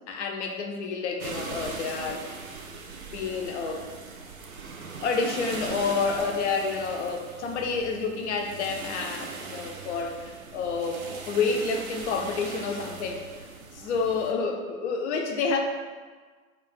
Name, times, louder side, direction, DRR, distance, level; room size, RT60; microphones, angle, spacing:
voice 1, 0.1-2.3 2.7-2.8 3.1-3.8 5.0-13.2 13.7-15.6, left 4 dB, 55° left, 3 dB, 0.5 m, -29 dB
sound 1, 1.2-14.3, right 4 dB, 80° right, 0.5 m, -40 dB
2.3 x 2.3 x 3.7 m, 1.4 s
figure-of-eight pair, 100°, 42 cm